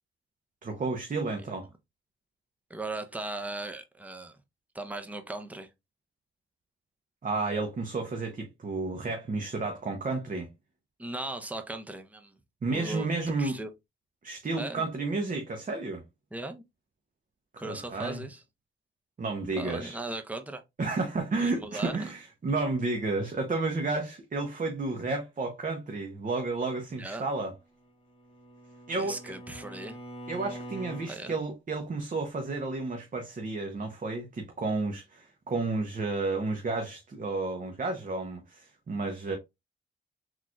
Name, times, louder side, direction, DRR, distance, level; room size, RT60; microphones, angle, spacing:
voice 1, 0.6-1.7 7.2-10.5 12.6-13.6 14.2-16.0 17.5-18.2 19.2-20.0 20.8-27.5 28.9-29.3 30.3-39.4, right 3 dB, 40° right, 0.8 m, -31 dB
voice 2, 2.7-4.4 4.7-5.7 11.0-12.4 12.6-13.1 13.4-13.7 14.6-14.8 16.3-16.6 17.6-18.4 19.6-20.6 21.4-22.1 27.0-27.2 29.0-30.0 31.1-31.4, right 2 dB, 5° right, 0.7 m, -38 dB
Bowed string instrument, 27.8-31.2, right 1 dB, 25° left, 0.8 m, -44 dB
3.8 x 3.1 x 2.4 m
cardioid pair, 65°, 21 cm